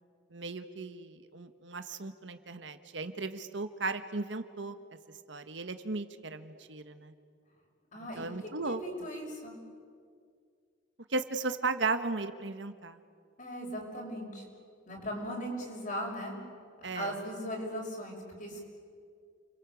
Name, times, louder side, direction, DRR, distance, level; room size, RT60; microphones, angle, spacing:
voice 1, 0.3-4.8 5.3-7.1 8.2-9.1 11.1-13.0 16.8-17.2, right 3 dB, 70° right, 9 dB, 1.4 m, -36 dB
voice 2, 7.9-8.3 8.6-9.6 13.4-14.4 14.9-16.4 16.9-18.6, equal, 45° left, 0 dB, 6.5 m, -38 dB
29.5 x 23.0 x 8.4 m, 2.2 s
head